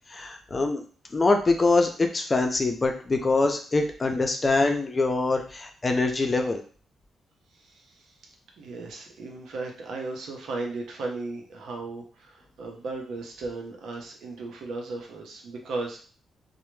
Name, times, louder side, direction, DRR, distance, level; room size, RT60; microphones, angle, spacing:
voice 1, 0.1-0.8 1.1-6.6, left 3 dB, 30° left, 4 dB, 0.5 m, -24 dB
voice 2, 7.5-8.1 8.6-16.0, right 3 dB, 75° right, 1 dB, 0.6 m, -36 dB
2.1 x 2.1 x 3.0 m, 0.40 s
cardioid pair, 70°, 0 cm